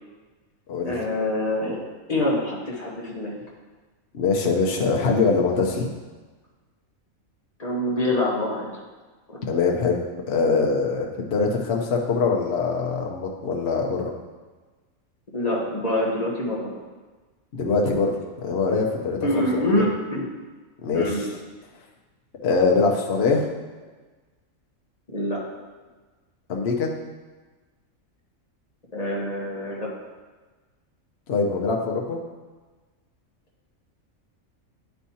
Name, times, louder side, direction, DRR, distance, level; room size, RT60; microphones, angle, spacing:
voice 1, 0.8-1.8 2.1-3.3 7.6-8.8 9.3-9.4 15.3-16.7 19.2-20.3 20.9-21.2 25.1-25.4 28.9-29.9, left 1 dB, 30° left, -4 dB, 1.3 m, -25 dB
voice 2, 4.1-5.9 9.5-10.0 10.3-14.1 17.5-19.9 20.8-21.3 22.4-23.4 26.5-26.9 31.3-32.2, left 4 dB, 55° left, 0 dB, 1.0 m, -23 dB
9.8 x 4.5 x 2.8 m, 1.3 s
omnidirectional pair, 1.4 m